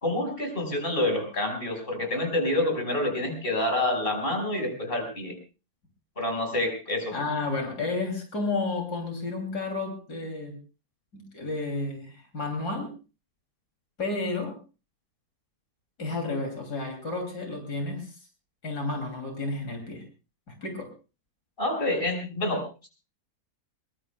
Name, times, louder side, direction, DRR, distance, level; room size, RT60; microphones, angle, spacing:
voice 1, 0.0-5.3 6.2-7.2 21.6-22.9, left 1 dB, 35° left, 3 dB, 5.6 m, -28 dB
voice 2, 7.1-10.6 11.1-12.9 14.0-14.6 16.0-18.2 18.6-20.0 20.5-20.9, left 3 dB, 80° left, 4 dB, 3.5 m, -31 dB
22.5 x 22.5 x 2.3 m, 0.32 s
omnidirectional pair, 1.7 m